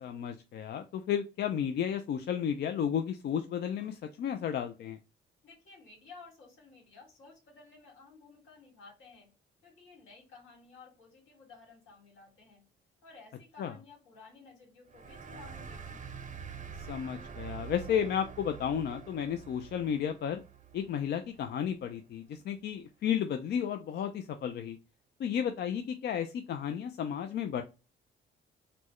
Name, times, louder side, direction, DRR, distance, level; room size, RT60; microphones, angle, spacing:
voice 1, 0.0-5.0 13.6-13.7 16.9-20.4 20.7-24.8 25.2-27.6, left 8 dB, 60° left, 6 dB, 0.4 m, -33 dB
voice 2, 5.4-9.3 9.6-12.6 13.0-16.2, left 4 dB, 80° left, 0 dB, 1.9 m, -55 dB
sound 1, 14.9-22.0, right 7 dB, 40° right, 0.6 m, -46 dB
4.2 x 2.1 x 3.0 m, 0.29 s
cardioid pair, 90°, 20 cm